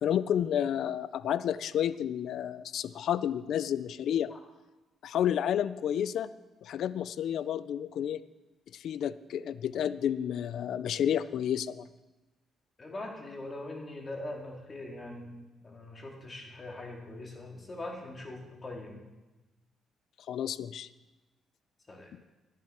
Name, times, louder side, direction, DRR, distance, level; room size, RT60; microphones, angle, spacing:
voice 1, 0.0-4.3 5.0-6.3 6.6-8.2 8.7-11.9 20.3-20.9, left 9 dB, 70° left, 16 dB, 0.4 m, -30 dB
voice 2, 12.8-15.3 15.6-19.0 21.9-22.1, left 2 dB, 30° left, 1 dB, 2.6 m, -42 dB
12.5 x 10.5 x 4.5 m, 1.1 s
cardioid pair, 90°, 0 cm